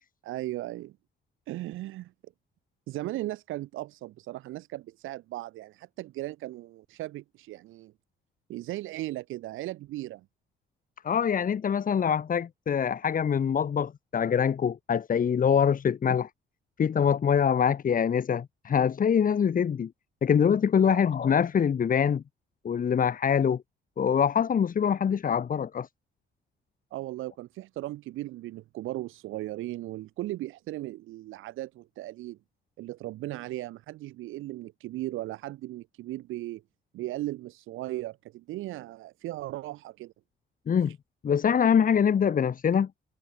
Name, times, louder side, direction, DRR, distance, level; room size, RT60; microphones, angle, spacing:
voice 1, 0.2-1.0 1.5-2.1 2.9-7.9 8.5-10.2 20.8-21.0 26.9-32.4 32.8-36.6 36.9-40.1, right 16 dB, 90° right, 1.8 m, -37 dB
voice 2, 11.0-16.3 16.8-19.9 20.2-22.2 22.6-23.6 24.0-25.9 40.7-41.0 41.2-42.9, left 7 dB, 45° left, 1.3 m, -24 dB
cardioid pair, 90°, 20 cm